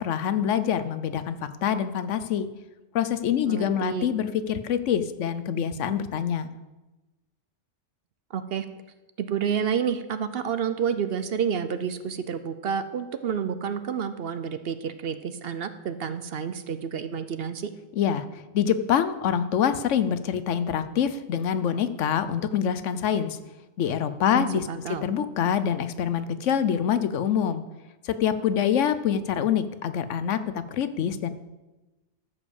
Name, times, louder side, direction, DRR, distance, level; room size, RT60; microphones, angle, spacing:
voice 1, 0.0-2.5 2.9-6.5 18.0-18.2 18.5-23.4 23.8-27.7 28.0-31.3, left 8 dB, 80° left, 12 dB, 1.0 m, -25 dB
voice 2, 3.5-4.1 8.3-8.6 9.2-17.7 24.3-25.1, right 7 dB, 60° right, 11 dB, 0.8 m, -29 dB
13.5 x 5.2 x 7.0 m, 1.1 s
omnidirectional pair, 1.3 m